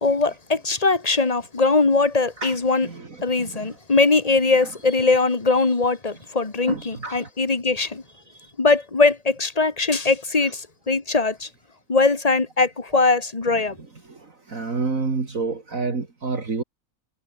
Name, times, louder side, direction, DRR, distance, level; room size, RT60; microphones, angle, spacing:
voice 1, 0.0-2.9 3.2-8.0 8.6-11.5 11.9-13.8, left 3 dB, 25° left, 1.8 m, -21 dB
voice 2, 6.7-7.2 14.5-16.6, right 4 dB, 60° right, 3.2 m, -28 dB
omnidirectional pair, 1.6 m